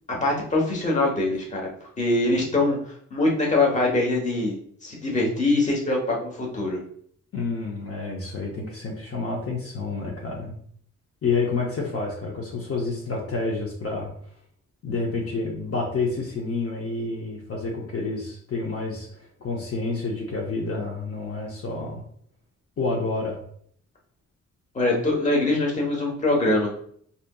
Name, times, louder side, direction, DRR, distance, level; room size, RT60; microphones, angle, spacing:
voice 1, 0.1-1.7 2.0-2.8 3.1-4.6 4.8-6.8 24.7-26.7, left 2 dB, 25° left, -1 dB, 0.9 m, -23 dB
voice 2, 7.3-10.6 11.2-14.1 14.8-19.1 19.4-22.0 22.8-23.4, left 3 dB, 50° left, -2 dB, 0.7 m, -29 dB
4.8 x 2.7 x 2.3 m, 0.62 s
wide cardioid pair, 160°, 29 cm